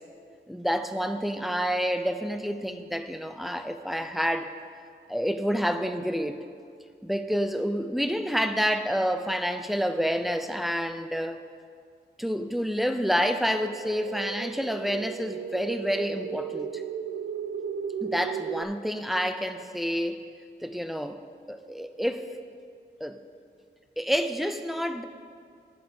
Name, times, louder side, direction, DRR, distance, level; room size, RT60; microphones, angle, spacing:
voice 1, 0.5-4.5 5.1-6.4 7.0-11.4 12.2-16.8 18.0-20.2 20.6-21.2 21.5-22.3 23.0-23.2 24.0-25.0, equal, ahead, 8 dB, 0.3 m, -28 dB
sound 1, 13.7-18.6, right 7 dB, 70° right, 0.4 m, -35 dB
10.0 x 5.9 x 5.3 m, 2.2 s
wide cardioid pair, 180°, 19 cm